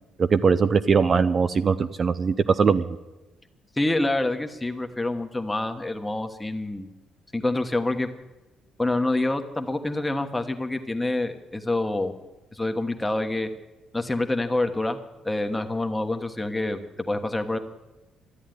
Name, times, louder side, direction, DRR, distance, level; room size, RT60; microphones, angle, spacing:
voice 1, 0.2-2.8, right 5 dB, 40° right, 11 dB, 0.5 m, -21 dB
voice 2, 3.8-6.9 7.3-8.1 8.8-12.1 12.5-13.5 13.9-15.0 15.2-16.8 17.1-17.6, left 2 dB, 10° left, 6 dB, 1.2 m, -26 dB
13.5 x 8.3 x 9.3 m, 1.1 s
cardioid pair, 95°, 0 cm